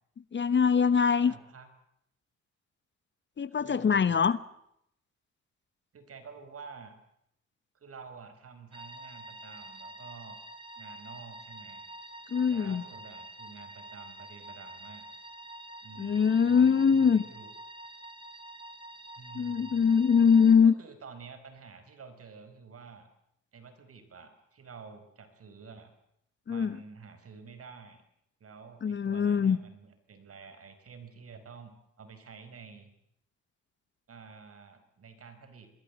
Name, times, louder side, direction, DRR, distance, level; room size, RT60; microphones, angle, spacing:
voice 1, 0.3-1.3 3.4-4.4 12.3-12.8 16.0-17.2 19.3-20.7 26.5-26.7 28.8-29.6, left 6 dB, 40° left, 16 dB, 1.1 m, -23 dB
voice 2, 1.2-1.7 3.5-4.1 5.9-6.9 7.8-10.4 10.7-11.8 12.5-15.1 15.8-16.2 16.5-17.5 19.2-19.8 20.6-23.1 23.5-25.9 26.5-28.0 28.4-32.9 34.1-35.7, right 5 dB, 50° right, 10 dB, 5.0 m, -49 dB
sound 1, 8.7-20.5, right 1 dB, 15° right, 5.1 m, -47 dB
26.5 x 21.0 x 8.3 m, 0.75 s
cardioid pair, 90°, 30 cm